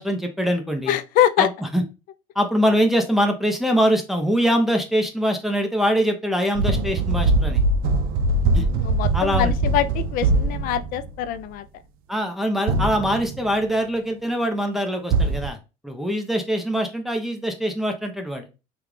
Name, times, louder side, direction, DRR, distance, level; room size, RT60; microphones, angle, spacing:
voice 1, 0.0-1.0 1.4-1.5 1.7-1.8 2.4-7.6 8.5-8.6 9.1-9.5 12.1-15.6 15.8-18.5, equal, ahead, 0.7 m, -23 dB
voice 2, 0.9-1.5 8.5-11.6, left 11 dB, 60° left, 0.4 m, -24 dB
sound 1, 6.6-11.2 12.7-13.5 15.1-15.5, right 2 dB, 65° right, 0.5 m, -22 dB
3.5 x 2.4 x 3.1 m
supercardioid pair, 105°, 17 cm